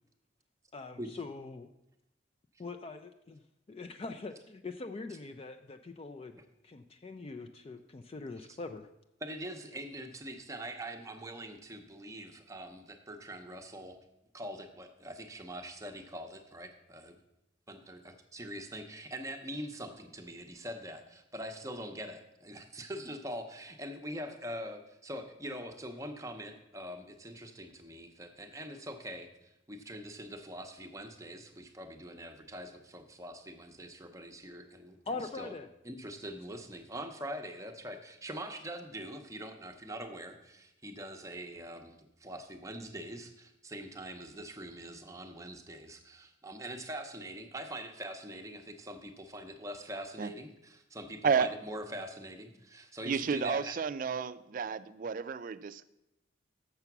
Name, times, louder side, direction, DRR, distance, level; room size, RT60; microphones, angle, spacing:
voice 1, 0.7-1.7 2.6-3.4 3.7-6.3 6.6-8.9 35.1-35.7, left 3 dB, 30° left, 6 dB, 0.3 m, -42 dB
voice 2, 9.2-14.0 14.3-17.2 17.7-35.0 35.3-35.5 35.8-53.8, right 1 dB, 15° right, 5 dB, 0.7 m, -43 dB
voice 3, 53.1-55.8, right 6 dB, 45° right, 15 dB, 0.3 m, -31 dB
6.8 x 6.8 x 5.9 m, 0.87 s
head